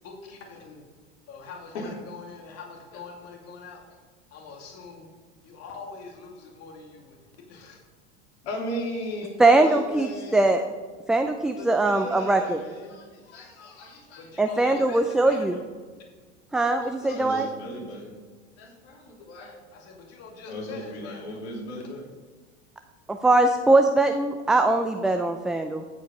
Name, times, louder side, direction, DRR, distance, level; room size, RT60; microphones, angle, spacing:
voice 1, 0.0-0.8 1.3-3.8 4.3-5.1 5.4-7.2 7.5-7.8 14.3-15.7 19.7-21.4, left 4 dB, 45° left, 1 dB, 2.5 m, -44 dB
voice 2, 8.4-10.5 11.5-14.2 14.5-14.9 15.3-15.4 16.6-18.2 18.6-19.6 20.5-22.1 24.1-24.2, left 1 dB, 70° left, -1 dB, 3.2 m, -37 dB
voice 3, 9.4-10.6 11.1-12.6 14.4-15.6 16.5-17.5 23.1-25.8, right 2 dB, ahead, 5 dB, 0.3 m, -21 dB
15.0 x 5.1 x 5.2 m, 1.4 s
hypercardioid pair, 100°, 35 cm